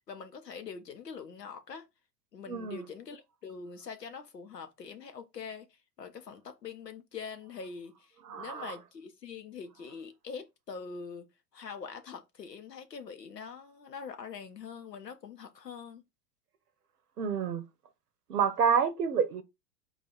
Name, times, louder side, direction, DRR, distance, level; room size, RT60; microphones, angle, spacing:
voice 1, 0.1-1.9 2.3-5.7 6.0-8.1 8.3-11.3 11.5-16.0, left 5 dB, 85° left, 0.8 m, -44 dB
voice 2, 2.5-2.8 8.3-8.7 17.2-17.6 18.3-19.4, right 6 dB, 75° right, 0.8 m, -28 dB
4.0 x 2.4 x 4.3 m
figure-of-eight pair, 90°, 48 cm